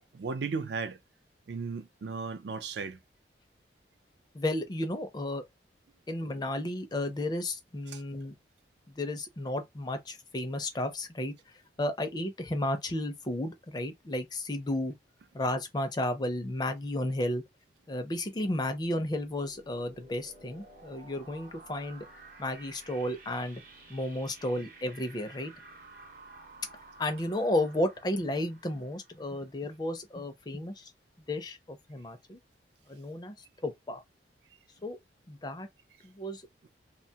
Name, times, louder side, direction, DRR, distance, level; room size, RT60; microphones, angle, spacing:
voice 1, 0.1-1.0 1.5-3.0 7.9-8.0, right 4 dB, 70° right, 0.4 m, -35 dB
voice 2, 4.3-5.4 6.1-8.3 8.9-11.3 11.8-14.9 15.3-17.4 17.9-22.1 22.4-23.6 23.9-25.5 27.0-30.9 31.3-32.4 32.9-33.3 33.6-34.0 34.8-35.0 35.3-35.7 36.0-36.4, left 1 dB, 20° left, 0.4 m, -33 dB
sound 1, 18.1-29.8, right 3 dB, 50° right, 0.8 m, -53 dB
2.8 x 2.2 x 2.7 m
head